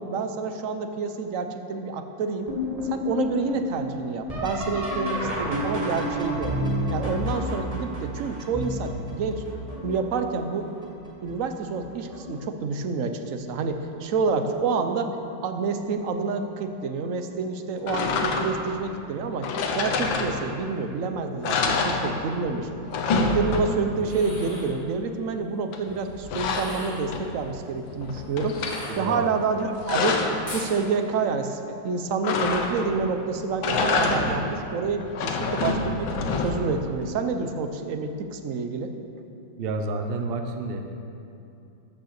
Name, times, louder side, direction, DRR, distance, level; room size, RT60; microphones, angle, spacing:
voice 1, 0.0-2.5 2.9-6.6 6.9-9.4 9.8-10.7 11.2-15.1 15.4-19.5 19.7-22.7 23.1-28.6 29.0-30.2 30.5-31.6 31.8-36.1 36.4-38.9, right 4 dB, 60° right, 7 dB, 0.9 m, -28 dB
sound 1, 2.5-10.2 10.8-11.4 11.8-12.5 13.7-13.8 14.5-14.9 17.0-17.1 19.5-19.6, equal, 20° right, 1.8 m, -30 dB
sound 2, 17.9-18.7 19.4-20.7 21.0-21.1 21.4-22.5 22.8-24.0 25.7-27.5 27.9-28.8 29.5-30.5 32.2-33.0 33.5-34.5 35.0-36.8, left 4 dB, 90° left, 1.7 m, -27 dB
sound 3, 24.0-24.8 26.4-27.1 28.6-29.5 30.5-30.7, left 1 dB, 15° left, 2.0 m, -39 dB
voice 2, 28.9-29.3 39.6-40.9, right 3 dB, 75° right, 5 dB, 0.5 m, -30 dB
14.0 x 6.6 x 6.5 m, 2.7 s
omnidirectional pair, 2.1 m